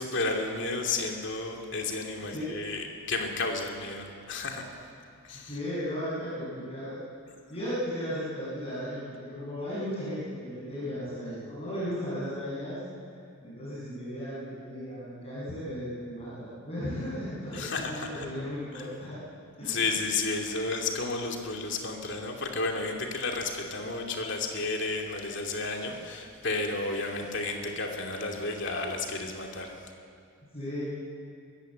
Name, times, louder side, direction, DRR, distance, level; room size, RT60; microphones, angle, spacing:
voice 1, 0.0-4.6 5.2-5.5 17.5-18.3 18.7-18.9 19.6-29.8, left 3 dB, 55° left, 2 dB, 2.6 m, -32 dB
voice 2, 5.5-7.0 7.5-12.8 13.4-19.2 19.6-19.9 30.5-30.9, equal, 25° left, -10 dB, 7.3 m, -35 dB
24.0 x 14.5 x 7.8 m, 2.3 s
head